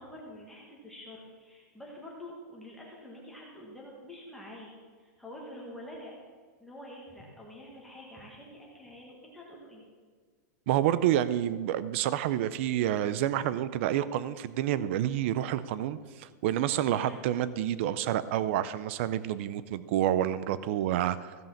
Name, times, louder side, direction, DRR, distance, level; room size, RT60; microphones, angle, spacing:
voice 1, 0.0-6.1 6.6-9.9 16.9-17.2, left 1 dB, ahead, -4 dB, 1.7 m, -47 dB
voice 2, 10.7-21.4, right 12 dB, 45° right, 15 dB, 0.5 m, -28 dB
15.0 x 5.5 x 7.2 m, 1.5 s
supercardioid pair, 165°, 9 cm